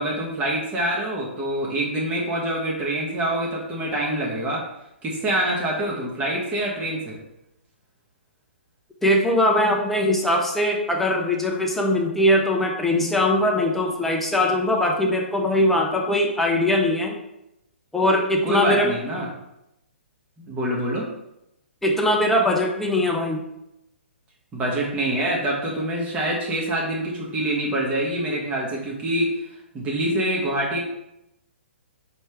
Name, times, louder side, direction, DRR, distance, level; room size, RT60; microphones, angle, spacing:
voice 1, 0.0-4.6 5.0-7.2 18.4-19.3 20.4-21.0 24.5-29.3 29.7-30.8, right 1 dB, 20° right, -3 dB, 1.0 m, -25 dB
voice 2, 9.0-17.1 17.9-18.9 21.8-23.4, left 1 dB, 5° left, 0 dB, 0.5 m, -21 dB
4.4 x 3.2 x 3.3 m, 0.85 s
figure-of-eight pair, 125°, 7 cm